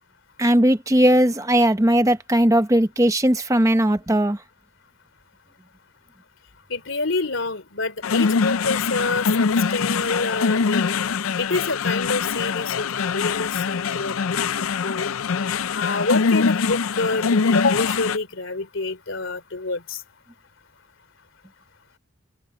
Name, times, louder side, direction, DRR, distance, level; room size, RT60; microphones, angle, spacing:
voice 1, 0.4-4.4, right 1 dB, 15° right, 1.0 m, -18 dB
voice 2, 6.7-11.0 11.4-15.1 15.7-20.0, left 3 dB, 70° left, 3.1 m, -27 dB
sound 1, 8.0-18.2, left 5 dB, 90° left, 0.5 m, -23 dB
head